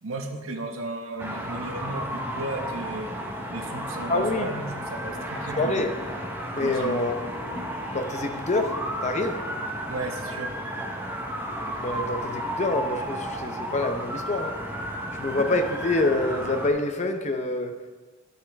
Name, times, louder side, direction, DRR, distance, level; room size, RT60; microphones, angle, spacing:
voice 1, 0.0-3.1 3.5-5.8 6.6-7.3 9.9-10.5, right 2 dB, 70° right, 3 dB, 1.0 m, -35 dB
sound 1, 1.2-16.7, equal, 10° right, 0.9 m, -33 dB
voice 2, 4.1-4.5 5.6-5.9 6.5-7.2 7.9-8.7 9.0-9.4 11.8-14.5 15.2-17.7, left 2 dB, 35° left, 6 dB, 0.7 m, -26 dB
13.0 x 6.5 x 3.4 m, 1.4 s
head